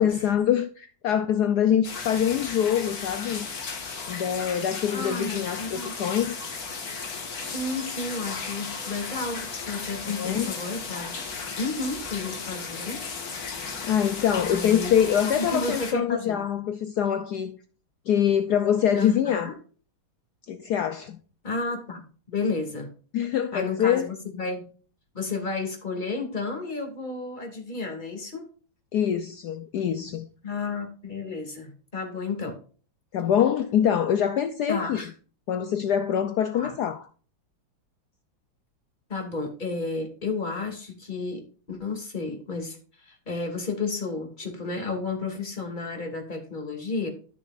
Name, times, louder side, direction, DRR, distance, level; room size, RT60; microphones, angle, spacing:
voice 1, 0.0-3.5 4.1-6.4 10.1-10.5 13.8-17.6 18.1-19.5 20.5-21.2 23.1-24.1 28.9-30.3 33.1-35.0 35.5-37.0, left 9 dB, 70° left, 1.0 m, -24 dB
sound 1, 1.8-15.9, left 4 dB, 50° left, 2.0 m, -35 dB
voice 2, 4.9-5.9 7.4-11.1 11.6-13.0 14.4-14.9 15.4-16.4 18.9-19.6 21.4-22.9 23.5-24.7 25.1-28.5 30.4-32.6 34.7-35.1 36.5-36.7 39.1-41.4 41.7-47.1, left 3 dB, 25° left, 2.5 m, -32 dB
13.0 x 6.9 x 2.5 m
omnidirectional pair, 2.2 m